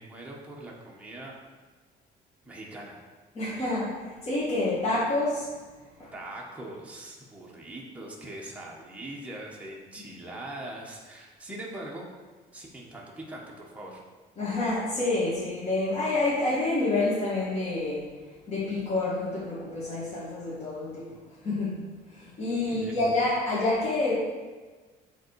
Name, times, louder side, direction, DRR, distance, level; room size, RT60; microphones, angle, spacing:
voice 1, 0.0-1.3 2.4-3.0 6.1-12.1 12.5-14.0 22.5-22.9, right 1 dB, 10° right, -3 dB, 1.4 m, -41 dB
voice 2, 3.3-5.5 6.0-6.1 14.4-18.0 18.5-21.1 21.4-21.8 22.1-24.1, left 2 dB, 35° left, -10 dB, 2.1 m, -28 dB
7.8 x 3.9 x 4.8 m, 1.4 s
cardioid pair, 110°, 17 cm